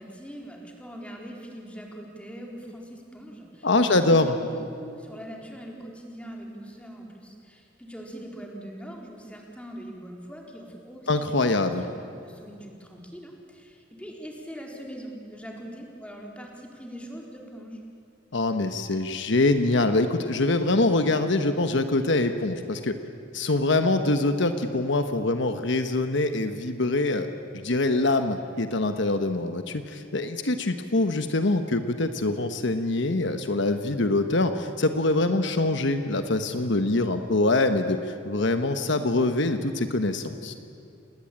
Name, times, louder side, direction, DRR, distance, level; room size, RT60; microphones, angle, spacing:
voice 1, 0.0-17.8, equal, 5° left, 0 dB, 4.0 m, -42 dB
voice 2, 3.6-4.3 11.1-11.8 18.3-23.0 23.3-27.3 27.5-40.5, left 2 dB, 65° left, 8 dB, 1.2 m, -24 dB
29.0 x 20.0 x 8.8 m, 2.6 s
head